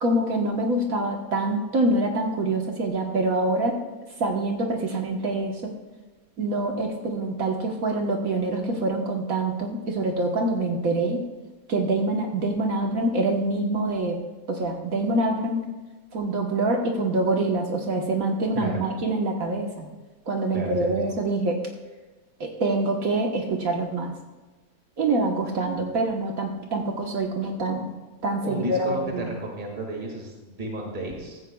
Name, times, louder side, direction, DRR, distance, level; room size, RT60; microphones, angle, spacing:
voice 1, 0.0-3.8 4.2-5.7 6.4-11.2 11.7-14.2 14.5-15.6 16.1-19.9 20.3-21.5 22.4-24.1 25.0-27.9 28.2-29.3, right 2 dB, 70° right, 1 dB, 1.6 m, -25 dB
voice 2, 20.5-21.2 28.4-31.4, right 1 dB, 30° right, 0 dB, 2.1 m, -32 dB
15.5 x 14.0 x 2.3 m, 1.2 s
omnidirectional pair, 1.6 m